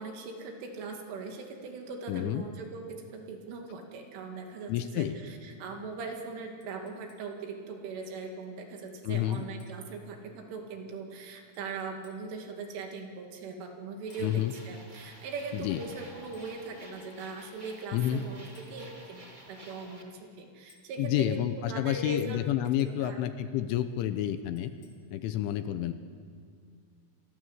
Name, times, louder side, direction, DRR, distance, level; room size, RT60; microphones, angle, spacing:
voice 1, 0.0-22.4 22.9-23.2, right 4 dB, 70° right, 3 dB, 4.8 m, -40 dB
voice 2, 2.1-2.5 4.7-5.2 9.0-9.4 14.2-14.5 15.5-15.8 17.9-18.2 21.0-24.7 25.1-25.9, left 11 dB, 80° left, 10 dB, 3.1 m, -29 dB
sound 1, 6.6-7.5 9.1-9.9 11.5-12.4 14.1-14.4 16.3-16.5 18.5-18.8 20.7-21.0 22.8-23.1 24.6-24.9, left 4 dB, 35° left, 2.8 m, -64 dB
sound 2, 14.1-20.0, right 1 dB, 15° right, 1.6 m, -51 dB
29.0 x 22.0 x 8.1 m, 2.1 s
omnidirectional pair, 6.0 m